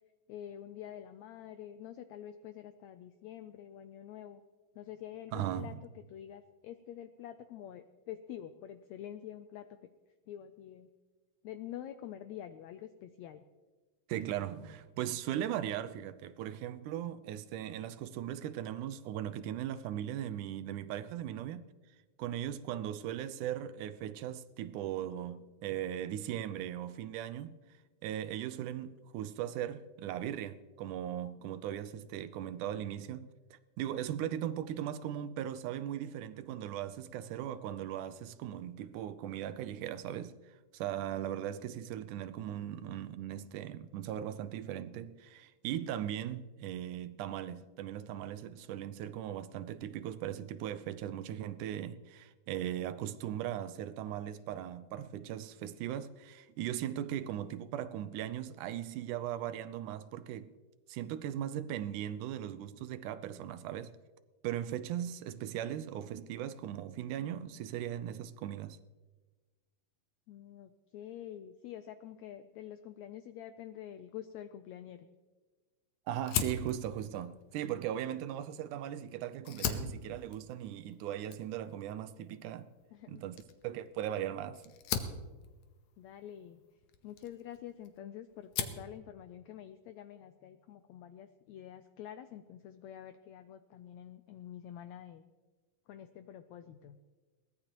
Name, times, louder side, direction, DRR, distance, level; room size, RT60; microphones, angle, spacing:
voice 1, 0.3-4.4 4.7-9.8 10.3-10.9 11.4-13.4 70.3-75.1 82.9-83.2 86.0-86.6 87.0-95.2 95.9-97.0, left 11 dB, 90° left, 1.6 m, -47 dB
voice 2, 5.3-5.8 14.1-21.7 22.2-27.6 28.0-60.5 60.9-63.9 64.4-68.8 76.1-82.7 83.1-84.6, right 11 dB, 80° right, 2.0 m, -38 dB
Fire, 76.2-78.9 79.3-88.0 88.3-88.9, left 7 dB, 70° left, 2.0 m, -40 dB
22.0 x 18.0 x 3.0 m
omnidirectional pair, 3.8 m